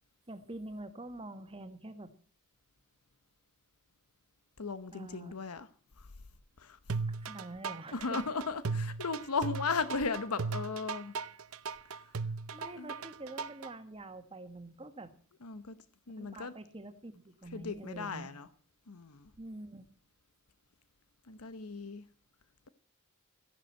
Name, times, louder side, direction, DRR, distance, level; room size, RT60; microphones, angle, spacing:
voice 1, 0.3-2.1 4.9-5.3 7.1-8.2 12.5-15.1 16.2-18.3 19.4-19.8, right 2 dB, 25° right, 1.7 m, -46 dB
voice 2, 4.6-5.7 6.0-6.1 6.6-6.9 7.9-11.2 11.9-12.2 12.7-13.0 15.4-15.8 16.1-16.5 17.5-18.5 18.9-19.3 21.2-22.1, left 4 dB, 85° left, 1.0 m, -36 dB
sound 1, 6.9-13.7, right 4 dB, 70° right, 0.8 m, -37 dB
15.0 x 11.0 x 7.6 m
head